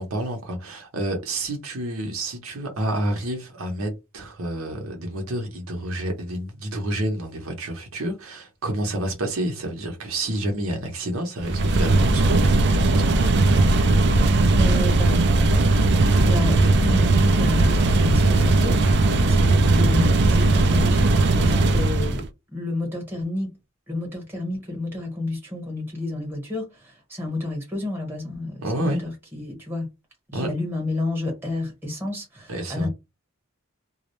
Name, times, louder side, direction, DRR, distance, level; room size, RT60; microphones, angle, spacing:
voice 1, 0.0-13.2 28.6-29.0 30.3-30.5 32.5-32.9, right 1 dB, 70° right, 0.7 m, -29 dB
sound 1, 11.4-22.3, right 2 dB, 50° right, 0.3 m, -18 dB
voice 2, 14.5-15.6 16.1-18.8 19.0-23.5 23.9-29.9 30.3-32.9, left 2 dB, 10° right, 1.0 m, -30 dB
2.3 x 2.0 x 2.9 m
head